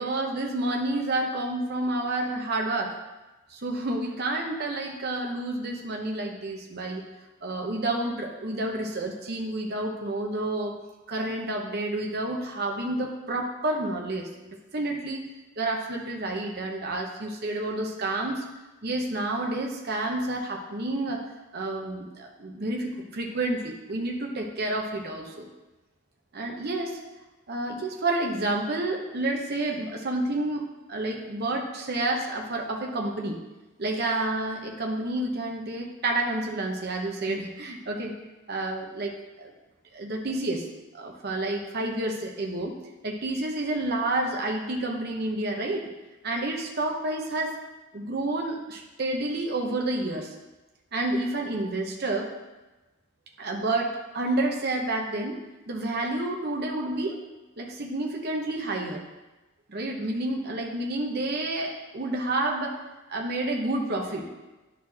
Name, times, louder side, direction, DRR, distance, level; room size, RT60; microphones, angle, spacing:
voice 1, 0.0-2.9 3.5-7.0 7.4-10.7 11.1-15.2 15.6-18.4 18.8-21.2 21.5-25.5 26.3-27.0 27.5-30.6 30.9-33.4 33.8-38.2 38.5-39.5 39.9-40.7 40.9-42.7 43.0-45.9 46.2-47.5 47.9-50.3 50.9-52.3 53.4-55.4 55.7-57.2 57.6-59.0 59.7-62.8 63.1-64.3, right 2 dB, 50° right, 1 dB, 0.8 m, -29 dB
10.5 x 4.2 x 2.8 m, 1.1 s
head